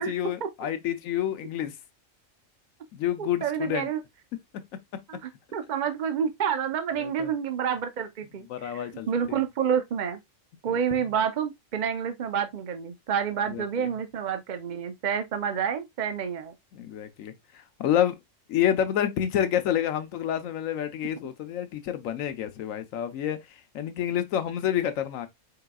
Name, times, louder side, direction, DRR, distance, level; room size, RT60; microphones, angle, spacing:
voice 1, 0.0-1.7 2.9-3.9 4.5-4.6 4.9-5.2 7.0-7.3 8.5-9.4 10.7-11.0 13.5-13.9 16.7-18.2 18.5-23.4 23.7-25.3, left 10 dB, 80° left, 1.0 m, -29 dB
voice 2, 3.2-4.0 5.1-10.2 10.6-16.5, right 7 dB, 55° right, 0.5 m, -29 dB
4.7 x 3.8 x 2.2 m
omnidirectional pair, 1.4 m